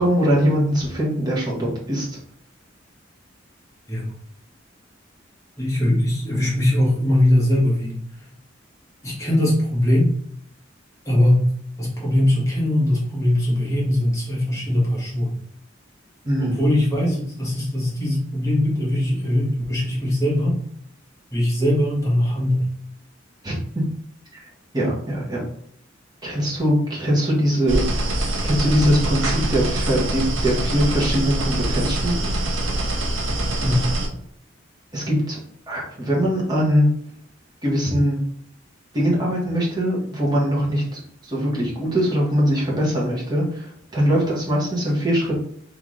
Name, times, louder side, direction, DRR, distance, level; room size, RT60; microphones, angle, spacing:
voice 1, 0.0-2.2 16.2-16.6 23.4-23.8 24.7-25.4 26.2-27.8 28.4-32.3 34.9-35.4 35.7-36.9 37.6-38.2 38.9-45.4, equal, 20° right, -4 dB, 1.3 m, -22 dB
voice 2, 5.6-8.0 9.0-10.1 11.0-11.4 11.8-15.3 16.4-20.6 21.3-22.6 33.6-33.8, left 1 dB, 15° left, -5 dB, 1.5 m, -20 dB
sound 1, 27.7-34.1, right 1 dB, 70° right, 0.7 m, -24 dB
3.8 x 3.4 x 3.2 m, 0.63 s
head